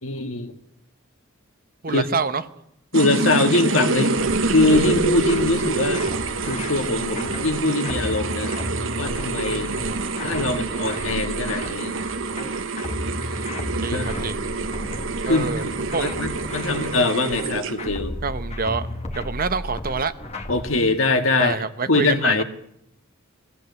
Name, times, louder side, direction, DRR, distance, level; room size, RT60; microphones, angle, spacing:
voice 1, 0.0-0.5 1.9-2.1 2.9-4.2 4.5-6.0 6.4-8.5 9.0-9.7 10.2-11.9 13.9-14.1 15.3-15.7 16.0-18.2 20.5-21.6 21.9-22.4, left 2 dB, 75° left, 1.9 m, -22 dB
voice 2, 1.8-2.5 9.5-10.0 13.0-14.4 15.2-15.7 15.9-16.2 18.2-20.1 21.4-22.4, right 4 dB, 45° right, 0.9 m, -27 dB
sound 1, 2.9-18.0, right 3 dB, 65° right, 1.1 m, -27 dB
sound 2, 4.2-20.8, left 1 dB, 30° left, 1.6 m, -34 dB
21.5 x 16.0 x 8.2 m
head